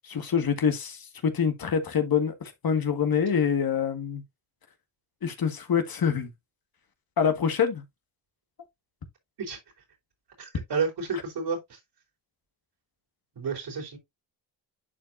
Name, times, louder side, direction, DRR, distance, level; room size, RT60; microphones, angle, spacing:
voice 1, 0.0-4.2 5.2-6.3 7.2-7.8, left 7 dB, 55° left, 1.8 m, -26 dB
voice 2, 10.4-11.8 13.4-14.0, right 5 dB, 70° right, 4.1 m, -31 dB
11.0 x 4.5 x 2.6 m
cardioid pair, 80°, 42 cm